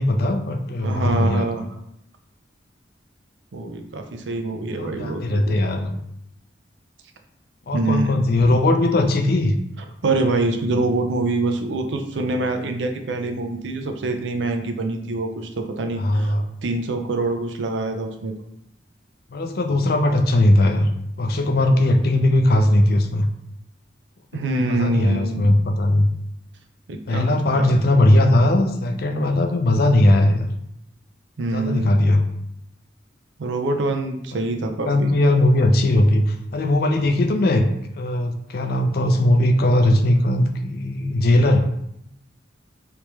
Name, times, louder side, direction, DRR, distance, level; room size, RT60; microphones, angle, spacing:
voice 1, 0.0-1.5 4.8-6.0 7.7-9.6 15.9-16.4 19.3-20.9 21.2-23.3 24.5-26.1 27.1-30.4 31.5-32.3 34.9-37.7 38.0-41.6, left 1 dB, 55° left, 6 dB, 0.4 m, -19 dB
voice 2, 0.8-1.6 3.5-5.4 7.7-8.2 10.0-16.3 16.6-18.3 24.3-25.6 26.9-27.7 31.4-32.1 33.4-35.1, right 2 dB, 75° right, 5 dB, 0.5 m, -25 dB
3.3 x 3.0 x 3.1 m, 0.76 s
head